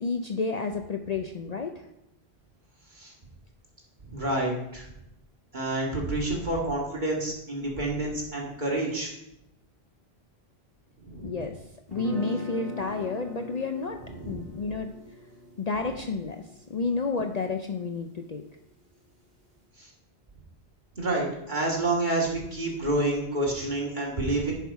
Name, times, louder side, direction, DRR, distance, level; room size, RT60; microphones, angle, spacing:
voice 1, 0.0-1.9 11.2-11.6 11.9-14.9 15.6-18.4, left 4 dB, 45° left, 5 dB, 0.6 m, -31 dB
voice 2, 4.1-4.8 5.5-9.1 11.0-11.4 14.1-14.4 19.8-19.9 21.0-24.5, right 2 dB, 45° right, -3 dB, 2.4 m, -28 dB
sound 1, 11.9-17.9, left 3 dB, 65° right, 2.2 m, -41 dB
10.0 x 5.6 x 4.7 m, 0.83 s
omnidirectional pair, 1.1 m